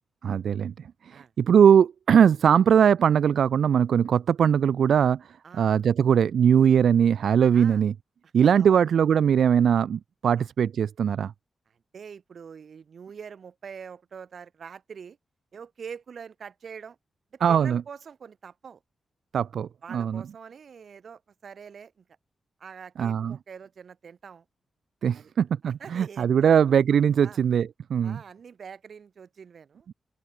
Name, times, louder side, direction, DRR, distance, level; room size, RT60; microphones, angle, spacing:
voice 1, 0.2-5.3 5.5-7.9 8.3-11.3 17.4-17.8 19.3-20.2 23.0-23.4 25.0-28.2, right 8 dB, 85° right, 0.4 m, -21 dB
voice 2, 8.4-8.8 10.4-10.5 11.7-15.2 15.5-17.0 17.3-18.8 19.8-22.0 22.6-24.4 25.1-25.3 25.6-26.5 27.2-27.4 28.0-29.9, right 6 dB, 60° right, 2.4 m, -44 dB
open air
wide cardioid pair, 165°, 0 cm